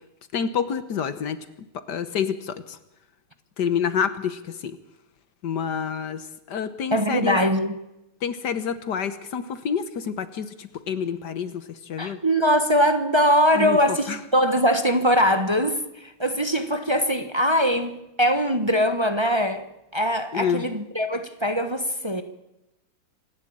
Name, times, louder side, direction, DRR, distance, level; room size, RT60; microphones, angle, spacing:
voice 1, 0.3-1.4 1.9-2.8 3.6-4.8 5.4-7.4 8.2-12.2 13.5-13.8 14.1-14.2 20.3-20.6, left 7 dB, 60° left, 1.6 m, -28 dB
voice 2, 6.9-7.7 12.0-19.7 19.9-22.2, equal, 20° right, 0.8 m, -22 dB
26.5 x 11.5 x 8.7 m
omnidirectional pair, 2.2 m